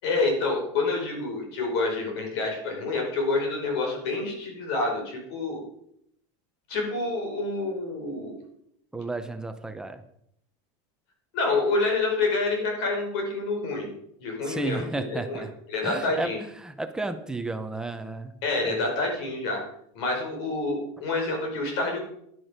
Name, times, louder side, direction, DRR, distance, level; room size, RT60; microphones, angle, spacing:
voice 1, 0.0-5.6 6.7-8.4 11.3-13.9 14.2-14.8 15.1-15.4 15.7-16.4 18.4-19.6 19.9-22.0, left 3 dB, 55° left, 1 dB, 5.2 m, -27 dB
voice 2, 8.9-10.0 14.4-15.5 15.8-18.3 18.6-18.9, right 2 dB, 5° right, 7 dB, 0.8 m, -33 dB
11.0 x 10.5 x 5.1 m, 0.72 s
supercardioid pair, 170°, 16 cm